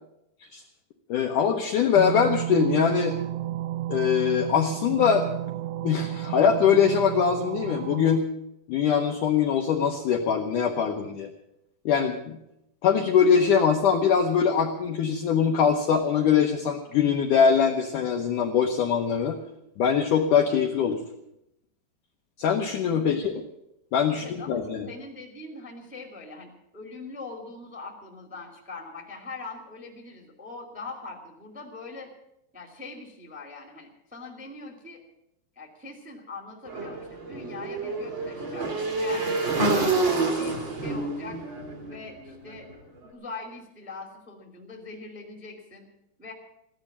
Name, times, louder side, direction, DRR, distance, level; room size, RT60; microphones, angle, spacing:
voice 1, 1.1-3.2 3.9-5.3 5.8-8.2 8.7-11.3 11.9-12.4 12.8-19.4 19.8-21.0 22.4-23.3 23.9-24.9, left 7 dB, 70° left, 2 dB, 2.0 m, -22 dB
sound 1, 2.0-8.2, right 13 dB, 85° right, 2.9 m, -32 dB
voice 2, 24.1-32.1 32.5-35.0 35.5-40.0 40.3-41.4 41.8-42.7 43.0-45.9 46.2-46.3, left 3 dB, 5° right, 2 dB, 1.5 m, -42 dB
Motorcycle / Engine, 36.7-42.8, right 3 dB, 30° right, 2.7 m, -28 dB
15.5 x 11.5 x 7.3 m, 0.83 s
omnidirectional pair, 4.8 m